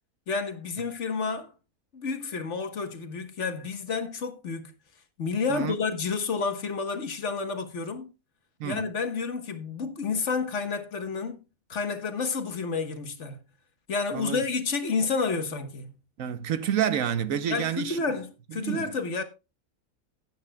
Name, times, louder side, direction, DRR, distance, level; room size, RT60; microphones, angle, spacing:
voice 1, 0.3-1.5 1.9-4.7 5.2-8.1 8.6-11.4 11.7-13.4 13.9-15.9 17.5-19.2, left 4 dB, 55° left, 1.5 m, -30 dB
voice 2, 16.2-18.0 18.6-18.9, right 9 dB, 70° right, 1.2 m, -28 dB
16.0 x 9.1 x 2.2 m
omnidirectional pair, 1.5 m